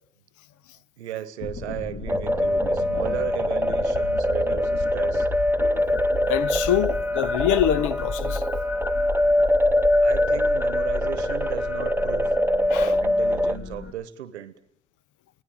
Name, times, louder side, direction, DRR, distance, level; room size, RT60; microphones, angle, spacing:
voice 1, 1.0-5.3 10.0-12.4 12.7-14.5, right 11 dB, 90° right, 1.0 m, -35 dB
sound 1, 1.4-13.9, left 3 dB, 40° left, 2.0 m, -34 dB
sound 2, 2.1-13.6, left 1 dB, 5° right, 0.8 m, -23 dB
voice 2, 5.6-8.4 12.7-12.9, left 11 dB, 65° left, 0.8 m, -25 dB
24.0 x 17.5 x 8.9 m
hypercardioid pair, 45°, 32 cm